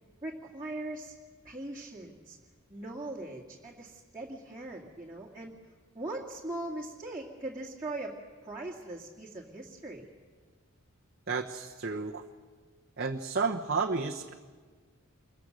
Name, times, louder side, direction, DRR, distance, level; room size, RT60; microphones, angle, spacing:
voice 1, 0.2-1.1 1.4-2.4 2.7-5.5 5.9-8.2 8.4-10.1, right 2 dB, 15° right, -5 dB, 2.1 m, -40 dB
voice 2, 11.3-12.2 13.0-14.3, right 4 dB, 50° right, 0 dB, 1.0 m, -31 dB
27.0 x 23.0 x 6.5 m, 1.5 s
head